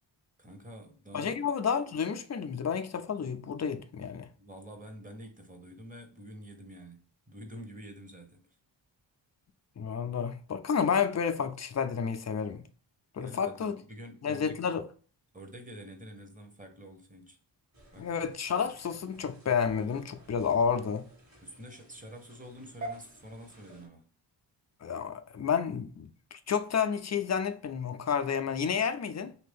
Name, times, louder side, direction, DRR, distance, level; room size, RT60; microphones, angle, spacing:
voice 1, 0.4-1.5 4.4-8.4 13.2-14.6 15.3-17.4 17.9-18.1 21.4-24.0, equal, 15° right, 0.9 m, -47 dB
voice 2, 1.1-4.3 9.8-12.6 13.2-13.8 14.2-14.9 18.0-21.1 24.8-29.5, left 6 dB, 40° left, 0.4 m, -30 dB
sound 1, 17.7-23.9, right 1 dB, 35° right, 1.5 m, -49 dB
2.9 x 2.6 x 3.4 m
cardioid pair, 50°, 46 cm